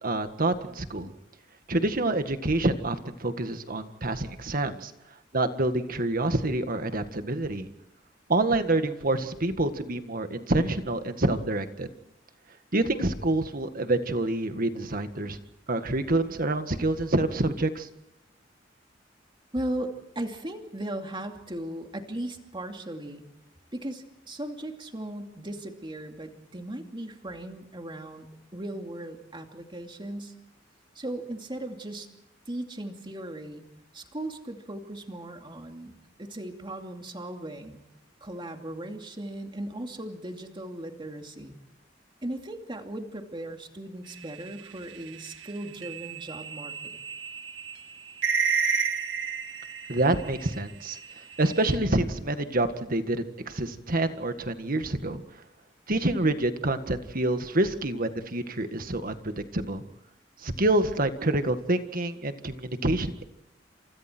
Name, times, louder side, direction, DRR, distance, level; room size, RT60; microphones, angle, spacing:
voice 1, 0.0-1.1 1.7-4.9 5.3-7.7 8.3-11.9 12.7-15.4 15.7-17.9 49.9-51.0 51.4-55.2 55.9-59.8 60.4-63.3, right 2 dB, 50° right, 8 dB, 1.8 m, -27 dB
voice 2, 19.5-23.2 23.7-30.3 30.9-32.1 32.5-33.7 33.9-37.8 38.2-41.6 42.2-47.0, right 1 dB, 25° right, 4 dB, 2.6 m, -37 dB
sound 1, 44.2-50.5 50.8-51.7, right 6 dB, 80° right, 1.7 m, -31 dB
30.0 x 27.0 x 4.5 m, 0.86 s
head